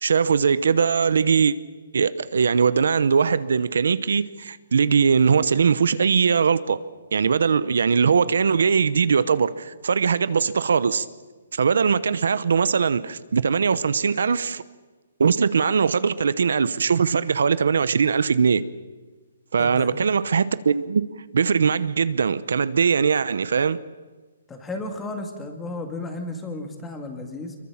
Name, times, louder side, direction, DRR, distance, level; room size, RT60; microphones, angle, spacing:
voice 1, 0.0-1.5 1.9-6.8 7.1-11.1 11.5-14.6 15.2-18.6 19.5-21.1 21.3-23.8, right 6 dB, 70° right, 0.9 m, -21 dB
voice 2, 19.6-19.9 24.5-27.6, left 2 dB, 10° left, 2.1 m, -33 dB
25.5 x 22.5 x 7.3 m
hypercardioid pair, 175°, 0 cm